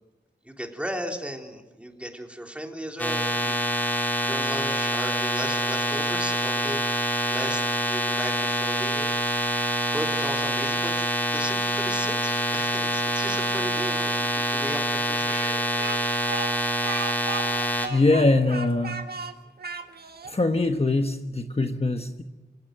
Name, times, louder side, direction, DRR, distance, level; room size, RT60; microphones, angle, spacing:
voice 1, 0.5-3.6 4.2-9.1 9.9-11.1 11.3-15.4, equal, 5° right, 2 dB, 3.5 m, -36 dB
sound 1, 3.0-17.9, equal, 10° left, 3.5 m, -26 dB
Speech, 15.2-20.3, right 4 dB, 60° right, 1.8 m, -35 dB
voice 2, 17.9-19.0 20.3-22.2, left 2 dB, 35° left, 5 dB, 1.2 m, -22 dB
26.0 x 17.0 x 7.6 m, 1.2 s
wide cardioid pair, 95°, 18 cm